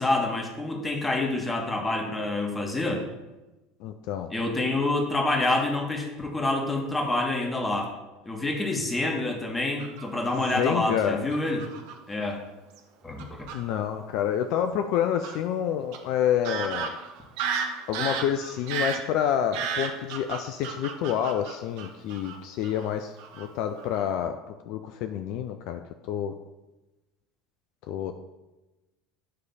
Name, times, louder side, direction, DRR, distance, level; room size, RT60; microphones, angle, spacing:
voice 1, 0.0-3.1 4.3-7.9 8.2-11.7 12.1-12.4 13.0-13.5, left 2 dB, 15° left, 1 dB, 1.5 m, -27 dB
voice 2, 3.8-4.3 10.3-11.2 13.5-17.0 17.9-24.4 24.7-26.4 27.9-28.1, left 9 dB, 60° left, 7 dB, 0.4 m, -28 dB
Fowl / Bird vocalization bird call bird song, 9.8-10.5 11.3-11.9 12.8-12.9 13.2-13.6 15.2-15.4 15.9-16.0 16.4-22.4 22.6-22.9 23.2-23.5 23.8-24.0, right 6 dB, 65° right, 0.8 m, -33 dB
9.4 x 3.2 x 4.1 m, 1.1 s
hypercardioid pair, 75°, 0 cm